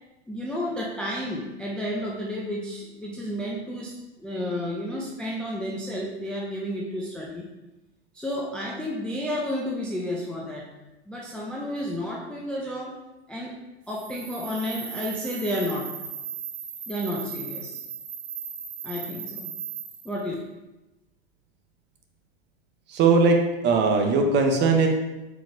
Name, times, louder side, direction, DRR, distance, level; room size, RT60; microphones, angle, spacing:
voice 1, 0.3-3.9 4.2-7.5 8.1-10.7 11.1-13.0 13.3-13.6 13.9-15.9 16.9-17.8 18.8-19.6 20.0-20.3, equal, 5° left, -3 dB, 0.3 m, -31 dB
sound 1, 13.9-20.2, right 7 dB, 55° right, 0.9 m, -37 dB
voice 2, 22.9-24.9, right 4 dB, 35° right, 3 dB, 0.7 m, -20 dB
4.3 x 3.8 x 2.5 m, 1.0 s
hypercardioid pair, 100°, 32 cm